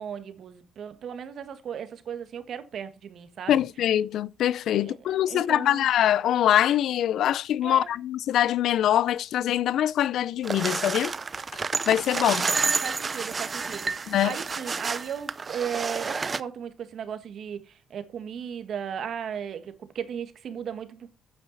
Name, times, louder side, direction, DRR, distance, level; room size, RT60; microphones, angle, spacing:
voice 1, 0.0-3.6 4.8-5.9 7.6-7.9 12.1-21.1, right 8 dB, 65° right, 1.6 m, -36 dB
voice 2, 3.5-11.1 11.9-12.4 14.1-14.3, left 11 dB, 75° left, 0.5 m, -23 dB
sound 1, 10.4-16.4, right 4 dB, 35° right, 0.6 m, -30 dB
8.9 x 8.7 x 4.0 m
cardioid pair, 90°, 0 cm